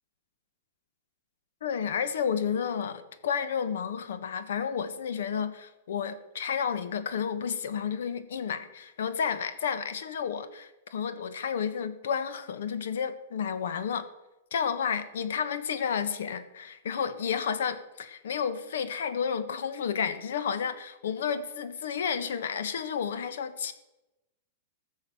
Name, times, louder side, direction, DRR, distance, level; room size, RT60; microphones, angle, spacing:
voice 1, 1.6-14.1 14.5-23.7, left 7 dB, 80° left, 1.4 m, -31 dB
14.5 x 6.5 x 7.8 m
supercardioid pair, 160°, 0 cm